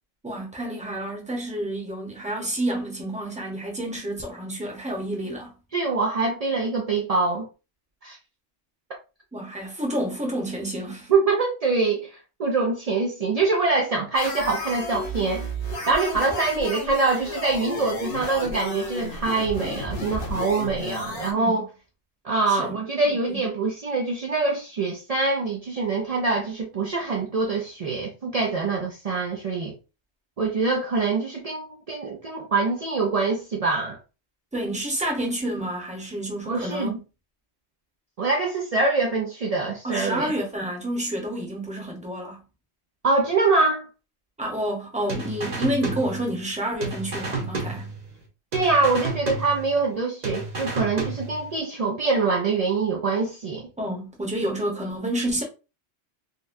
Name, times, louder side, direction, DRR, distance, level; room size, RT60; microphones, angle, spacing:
voice 1, 0.2-5.5 9.3-11.1 21.3-21.6 22.5-22.8 23.0-23.4 34.5-37.0 39.8-42.4 44.4-47.9 53.8-55.4, right 1 dB, 5° right, 0.7 m, -29 dB
voice 2, 5.7-7.5 8.0-8.2 11.1-15.4 15.9-21.7 22.2-29.7 30.4-34.0 36.5-37.0 38.2-40.3 43.0-43.9 48.5-53.7, right 3 dB, 60° right, 0.4 m, -24 dB
sound 1, 14.1-21.3, left 1 dB, 50° left, 1.0 m, -32 dB
sound 2, 45.1-46.5 46.8-48.2 48.5-49.9 50.2-51.6, right 3 dB, 35° right, 0.9 m, -31 dB
4.0 x 2.2 x 2.5 m
omnidirectional pair, 1.3 m